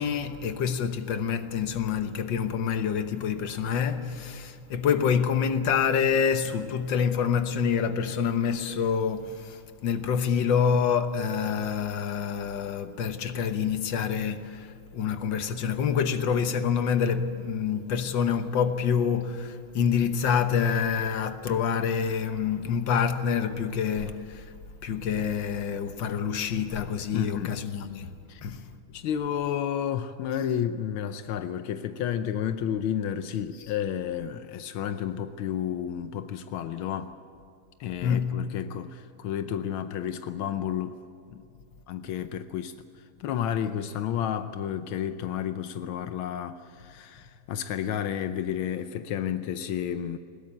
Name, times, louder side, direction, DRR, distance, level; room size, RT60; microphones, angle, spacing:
voice 1, 0.0-24.4 24.8-28.1 28.4-28.6 38.0-38.3, left 7 dB, 65° left, 1.7 m, -27 dB
voice 2, 27.1-27.5 28.3-28.4 28.9-37.1 37.8-41.0 41.3-41.4 41.9-42.7 43.2-50.2, left 9 dB, 85° left, 1.6 m, -31 dB
20.5 x 17.0 x 8.6 m
omnidirectional pair, 2.3 m